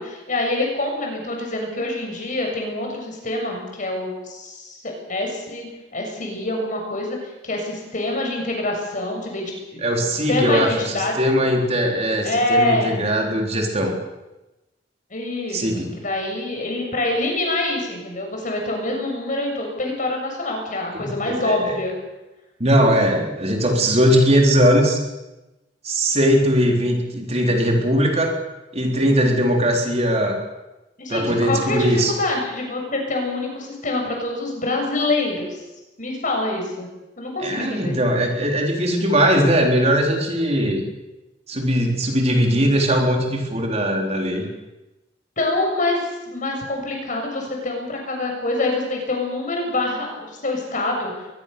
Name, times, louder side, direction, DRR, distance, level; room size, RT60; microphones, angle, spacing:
voice 1, 0.0-5.7 5.9-11.1 12.2-13.0 15.1-21.9 31.0-35.6 36.0-36.9 37.2-38.0 45.4-51.3, left 2 dB, 45° left, 1 dB, 7.3 m, -25 dB
voice 2, 9.8-14.0 15.5-15.9 20.9-21.8 22.6-25.0 25.8-28.4 28.7-30.4 31.1-32.1 37.4-40.8 41.5-44.5, equal, 35° right, 2 dB, 3.8 m, -20 dB
22.5 x 21.0 x 6.9 m, 1.0 s
head